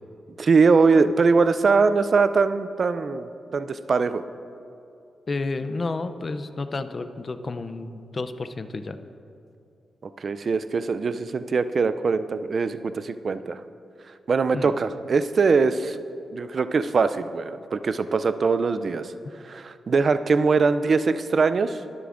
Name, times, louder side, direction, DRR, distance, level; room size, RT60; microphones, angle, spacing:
voice 1, 0.4-4.2 10.2-13.6 14.3-16.0 16.3-19.1 19.4-21.8, right 4 dB, 55° right, 12 dB, 0.4 m, -22 dB
voice 2, 5.3-9.0 14.5-14.7, left 3 dB, 40° left, 10 dB, 0.5 m, -31 dB
20.0 x 6.8 x 2.5 m, 2.6 s
cardioid pair, 75°, 0 cm